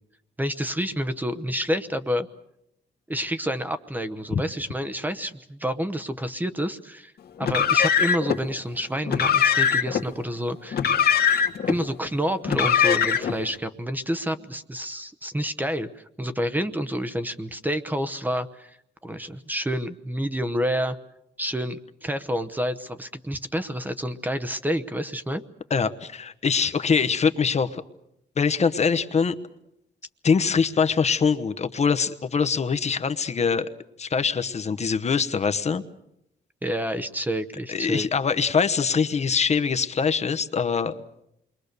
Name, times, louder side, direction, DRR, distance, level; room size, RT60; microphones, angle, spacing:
voice 1, 0.4-2.3 3.1-7.1 7.4-10.8 11.7-18.7 19.0-21.0 21.4-25.4 36.6-38.1, equal, 10° right, 10 dB, 0.9 m, -28 dB
Car, 7.4-8.4 9.1-10.0 10.7-11.8 12.4-13.4, left 7 dB, 60° left, 1.7 m, -21 dB
voice 2, 25.7-27.8 28.4-29.3 30.2-33.7 34.0-35.8 37.7-41.0, left 5 dB, 40° left, 10 dB, 1.0 m, -23 dB
28.5 x 22.5 x 6.7 m, 0.79 s
wide cardioid pair, 145°, 18 cm